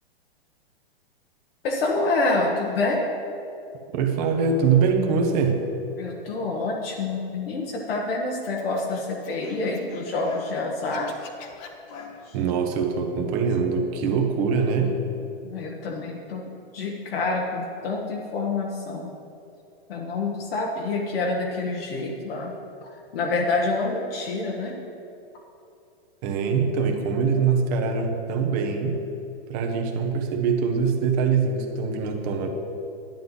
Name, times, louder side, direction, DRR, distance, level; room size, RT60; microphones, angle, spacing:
voice 1, 1.6-3.1 6.0-11.1 15.4-16.4 16.7-19.1 19.9-22.5 22.8-24.7, left 3 dB, 65° left, -2 dB, 1.4 m, -27 dB
voice 2, 3.9-5.6 12.3-15.0 26.2-29.0 29.5-32.5, right 5 dB, 40° right, 3 dB, 1.2 m, -23 dB
Scratching (performance technique), 8.4-10.5 10.8-12.4, left 5 dB, 40° left, 1.1 m, -44 dB
10.5 x 9.4 x 4.0 m, 2.7 s
hypercardioid pair, 140°, 31 cm